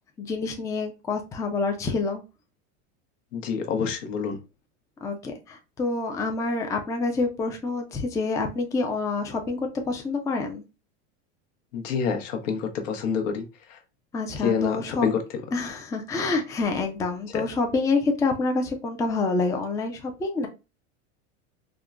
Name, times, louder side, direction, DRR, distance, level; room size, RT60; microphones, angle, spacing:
voice 1, 0.2-2.2 5.0-9.6 9.9-10.6 14.1-15.1 15.5-20.5, left 3 dB, 10° left, 4 dB, 0.3 m, -27 dB
voice 2, 3.3-4.4 11.7-13.4 14.4-15.2 17.3-17.4, left 6 dB, 75° left, 5 dB, 0.9 m, -27 dB
3.6 x 2.1 x 2.3 m, 0.28 s
supercardioid pair, 105°, 37 cm